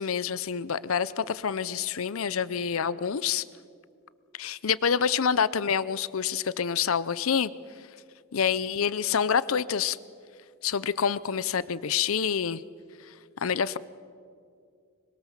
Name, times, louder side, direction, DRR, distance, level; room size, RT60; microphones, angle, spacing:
voice 1, 0.0-3.4 4.4-7.5 8.3-10.0 10.6-12.6 13.4-13.8, left 7 dB, 70° left, 17 dB, 0.6 m, -27 dB
25.0 x 23.0 x 7.3 m, 2.3 s
head